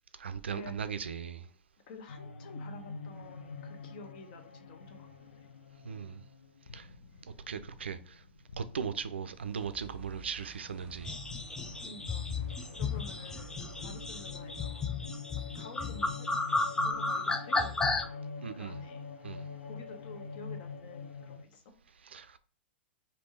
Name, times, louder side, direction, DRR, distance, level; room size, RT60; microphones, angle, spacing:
voice 1, 0.2-1.5 5.8-6.2 6.7-6.9 7.5-8.2 8.6-11.2 18.4-18.8 19.2-19.5 22.0-22.4, right 6 dB, 70° right, 0.4 m, -38 dB
voice 2, 1.9-5.5 11.8-15.0 15.5-16.3 16.8-18.3 18.5-19.1 19.7-21.7, left 4 dB, 50° left, 0.9 m, -50 dB
sound 1, 2.1-10.2 10.5-21.4, left 4 dB, 65° left, 0.6 m, -45 dB
sound 2, 9.3-14.9, right 5 dB, 10° right, 1.4 m, -52 dB
sound 3, 11.0-18.0, left 3 dB, 10° left, 0.4 m, -33 dB
3.5 x 2.7 x 4.1 m
figure-of-eight pair, 100°, 6 cm